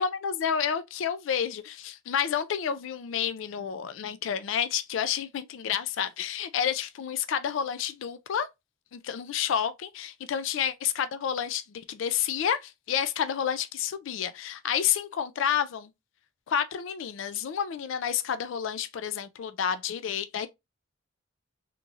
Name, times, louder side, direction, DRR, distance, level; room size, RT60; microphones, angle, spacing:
voice 1, 0.0-8.5 8.9-15.9 16.5-20.5, left 8 dB, 70° left, 0.3 m, -30 dB
3.8 x 2.9 x 2.4 m
head